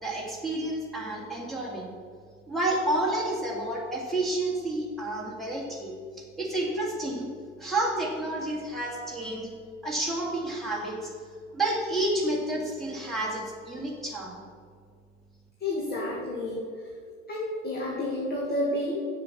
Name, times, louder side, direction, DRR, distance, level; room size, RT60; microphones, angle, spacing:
voice 1, 0.0-1.9 2.5-7.3 7.6-9.5 9.8-11.1 11.5-14.4, right 1 dB, ahead, -5 dB, 2.2 m, -30 dB
voice 2, 15.6-16.6 17.3-19.1, left 1 dB, 25° left, -4 dB, 2.1 m, -30 dB
7.5 x 7.4 x 7.3 m, 2.1 s
figure-of-eight pair, 70°, 39 cm